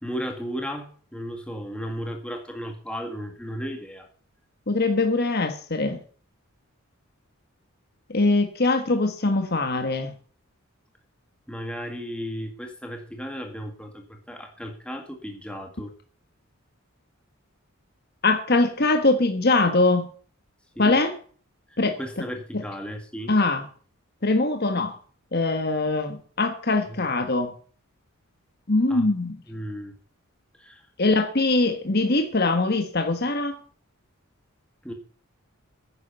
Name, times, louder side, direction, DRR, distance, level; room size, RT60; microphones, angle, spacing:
voice 1, 0.0-4.1 11.5-15.9 20.8-21.0 21.7-23.3 26.9-27.0 28.9-29.1 29.5-29.9 30.6-30.8 34.8-34.9, equal, 5° left, 2.0 m, -35 dB
voice 2, 4.7-6.0 8.1-10.1 18.2-20.1 20.8-21.1 21.8-22.0 22.5-22.6 23.3-23.6 24.2-25.0 25.3-27.5 28.7-29.4 31.0-33.6, left 2 dB, 45° left, 1.4 m, -22 dB
10.0 x 9.8 x 6.9 m
head